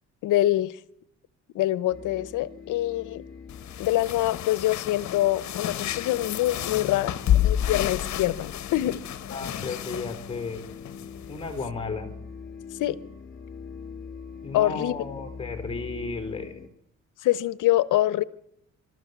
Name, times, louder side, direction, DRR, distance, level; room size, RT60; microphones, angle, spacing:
voice 1, 0.2-0.7 1.5-3.2 3.8-7.2 7.4-9.0 12.8-13.0 14.5-15.0 17.2-18.2, left 15 dB, 85° left, 19 dB, 0.9 m, -25 dB
sound 1, 1.9-16.7, left 5 dB, 40° left, 3.6 m, -44 dB
sound 2, 3.5-11.7, left 11 dB, 65° left, 1.2 m, -30 dB
voice 2, 6.6-7.1 9.3-10.6 11.3-12.1 14.4-16.7, left 4 dB, 20° left, 8 dB, 4.2 m, -34 dB
25.0 x 13.0 x 8.2 m, 0.76 s
cardioid pair, 90°, 30 cm